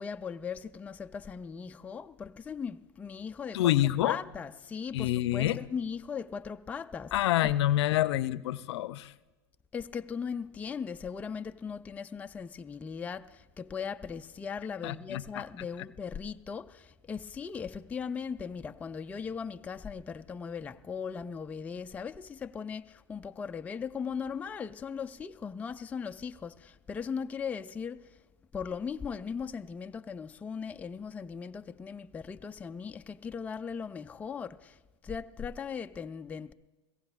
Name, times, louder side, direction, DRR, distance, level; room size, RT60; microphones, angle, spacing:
voice 1, 0.0-3.7 4.0-7.1 9.7-28.1 28.5-34.8 35.0-36.5, left 6 dB, 10° left, 0.3 m, -38 dB
voice 2, 3.5-4.2 4.9-5.6 7.1-9.1 14.8-15.4, left 14 dB, 70° left, 0.5 m, -27 dB
21.5 x 16.5 x 2.4 m
hypercardioid pair, 110°, 15 cm